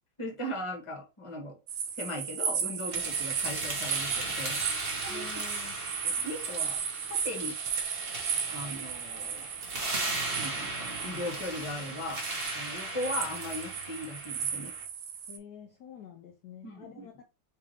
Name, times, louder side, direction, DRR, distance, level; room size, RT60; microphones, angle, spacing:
voice 1, 0.2-1.6 2.0-4.6 5.0-5.3 6.0-6.8 7.1-7.6 8.5-9.5 10.4-12.2 12.5-14.7 16.6-17.2, left 1 dB, 20° left, 0.8 m, -38 dB
sound 1, 1.7-15.4, right 7 dB, 80° right, 1.5 m, -35 dB
sound 2, 2.9-14.8, right 2 dB, 35° right, 1.1 m, -37 dB
voice 2, 5.1-5.8 15.3-17.2, left 8 dB, 80° left, 0.9 m, -48 dB
4.7 x 2.9 x 3.2 m
omnidirectional pair, 2.3 m